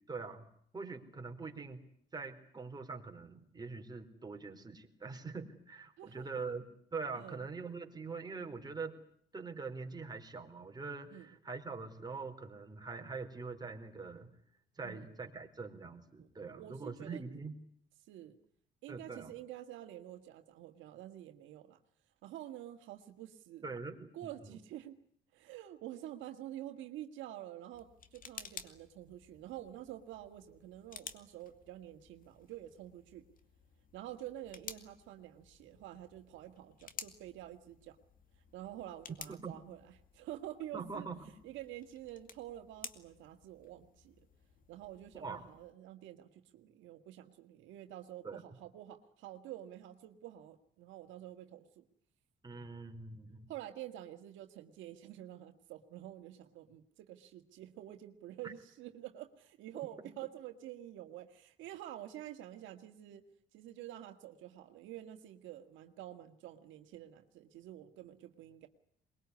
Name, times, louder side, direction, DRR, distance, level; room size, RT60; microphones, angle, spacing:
voice 1, 0.1-0.5 0.7-1.8 2.1-6.6 6.9-9.0 9.3-14.3 14.8-17.5 18.9-19.3 23.6-24.1 24.4-24.6 39.3-39.5 40.7-41.3 45.1-45.5 48.2-48.4 52.4-53.5 58.4-58.5, right 4 dB, 20° right, 4 dB, 4.2 m, -43 dB
voice 2, 16.2-17.2 18.1-18.4 18.8-21.8 22.2-23.6 24.1-25.0 25.3-33.2 33.9-38.0 38.5-39.8 40.1-41.1 41.4-44.2 44.7-51.9 53.5-63.2 63.5-68.7, right 13 dB, 85° right, 7 dB, 1.9 m, -48 dB
sound 1, 27.7-45.7, left 6 dB, 45° left, 2.3 m, -54 dB
22.5 x 21.5 x 9.6 m, 0.65 s
cardioid pair, 105°, 19 cm